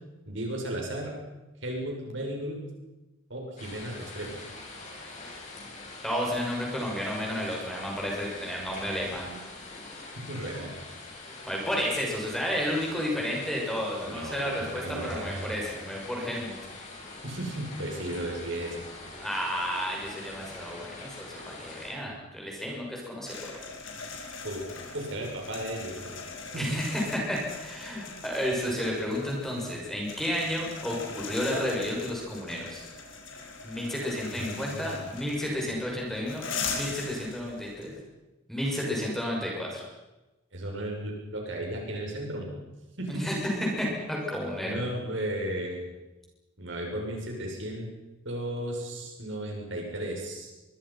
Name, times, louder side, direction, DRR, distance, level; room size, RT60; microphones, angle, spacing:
voice 1, 0.3-1.1 1.6-2.6 3.3-4.4 10.2-10.7 14.0-15.5 17.2-18.8 24.4-24.6 24.9-26.2 26.5-26.8 28.0-28.2 34.3-35.1 40.5-42.5 43.0-43.2 44.6-45.8 46.6-47.9 48.3-50.5, right 1 dB, 70° right, 0 dB, 7.2 m, -35 dB
sound 1, 3.6-21.9, left 2 dB, 35° left, 7.1 m, -44 dB
voice 2, 6.0-9.3 11.5-16.5 19.2-23.5 26.5-32.8 33.6-37.9 38.5-39.8 43.1-43.3 43.6-44.8, equal, ahead, -2 dB, 6.6 m, -32 dB
sound 2, 23.3-38.0, left 4 dB, 80° left, 5.2 m, -40 dB
24.0 x 24.0 x 5.9 m, 1.1 s
head